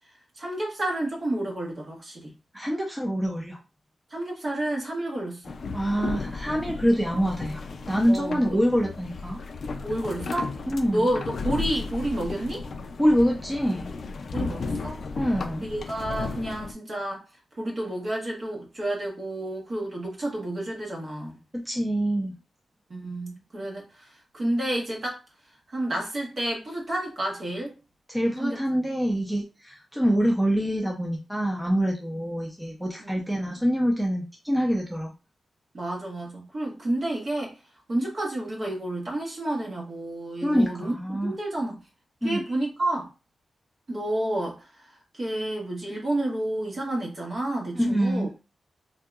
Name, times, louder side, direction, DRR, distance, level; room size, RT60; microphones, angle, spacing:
voice 1, 0.4-2.3 4.1-5.5 8.1-8.4 9.8-10.5 10.9-12.7 14.3-15.0 15.6-17.2 17.6-21.4 22.9-25.2 25.7-27.7 28.4-28.6 33.0-33.3 35.7-37.6 37.9-40.9 41.2-41.8 42.2-43.1 43.9-48.3, right 1 dB, 40° right, 1.1 m, -30 dB
voice 2, 2.5-3.6 5.7-9.4 10.7-11.1 13.0-13.9 15.2-15.7 21.5-22.3 28.1-35.1 40.4-41.3 42.2-42.4 47.7-48.4, equal, 5° right, 0.5 m, -25 dB
sound 1, 5.4-16.7, left 4 dB, 55° left, 0.3 m, -34 dB
3.6 x 2.7 x 2.3 m
wide cardioid pair, 160°, 0 cm